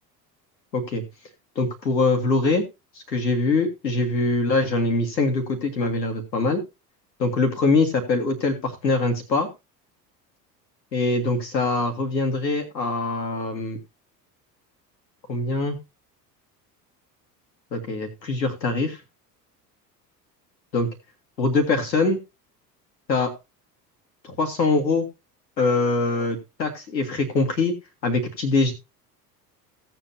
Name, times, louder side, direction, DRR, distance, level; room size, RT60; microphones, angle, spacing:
voice 1, 0.7-1.0 1.5-2.6 2.9-6.6 7.2-9.5 10.9-13.8 15.3-15.8 17.7-19.0 20.7-20.9 21.4-22.2 23.1-23.3 24.2-25.1 25.6-27.7 28.0-28.7, left 3 dB, 85° left, 4 dB, 1.6 m, -23 dB
16.0 x 7.6 x 2.8 m, 0.25 s
figure-of-eight pair, 65°, 50 cm